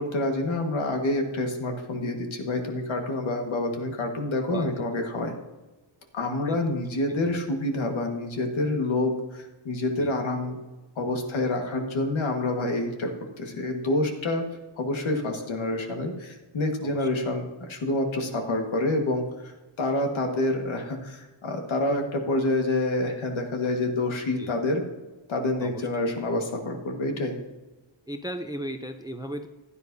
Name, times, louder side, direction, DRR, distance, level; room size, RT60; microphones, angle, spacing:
voice 1, 0.0-5.3 6.1-10.6 10.9-13.1 13.4-14.4 14.8-24.8 25.3-27.4, left 2 dB, 70° left, 3 dB, 1.7 m, -27 dB
voice 2, 4.5-5.0 6.5-6.6 7.1-7.4 10.0-10.1 16.8-17.1 24.4-24.5 25.6-25.9 28.1-29.5, right 1 dB, 10° right, 8 dB, 0.4 m, -37 dB
15.5 x 9.8 x 2.7 m, 1.2 s
wide cardioid pair, 135°, 48 cm